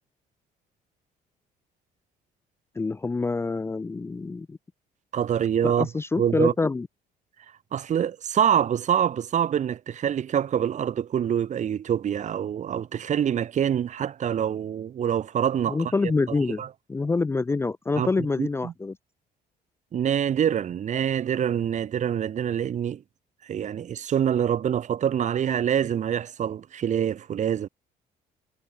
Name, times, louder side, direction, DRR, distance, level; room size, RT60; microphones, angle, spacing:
voice 1, 2.8-4.6 5.6-6.9 15.7-16.6 16.9-19.0, left 3 dB, 15° left, 0.5 m, -26 dB
voice 2, 5.1-5.9 6.2-6.5 7.7-15.8 16.6-16.7 18.0-18.1 18.4-18.7 19.9-23.0 23.4-27.7, right 9 dB, 45° right, 1.2 m, -25 dB
cardioid pair, 110°, 17 cm